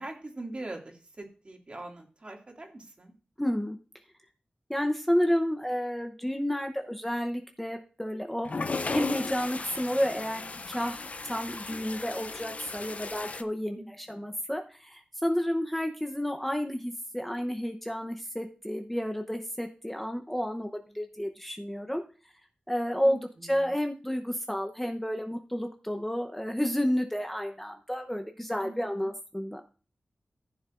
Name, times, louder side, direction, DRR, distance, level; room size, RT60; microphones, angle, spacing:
voice 1, 0.0-3.1 13.8-14.3 23.0-23.7 28.6-29.1, right 2 dB, 40° right, 1 dB, 2.3 m, -43 dB
voice 2, 3.4-3.8 4.7-8.6 8.9-11.0 11.3-20.7 20.9-22.0 22.7-29.6, equal, 5° left, 4 dB, 0.8 m, -31 dB
sound 1, 8.4-13.4, left 3 dB, 50° left, 0.6 m, -36 dB
15.0 x 7.1 x 2.5 m, 0.36 s
wide cardioid pair, 95°, 3 cm